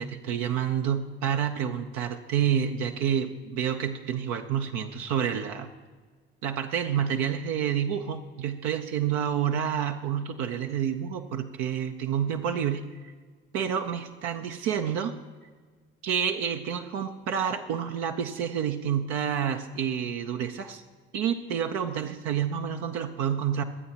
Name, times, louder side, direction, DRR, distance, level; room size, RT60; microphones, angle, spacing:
voice 1, 0.0-5.7 6.4-13.1 13.5-15.1 16.0-20.8 21.1-23.6, right 8 dB, 70° right, 5 dB, 0.7 m, -29 dB
23.0 x 8.6 x 2.9 m, 1.5 s
hypercardioid pair, 55°, 29 cm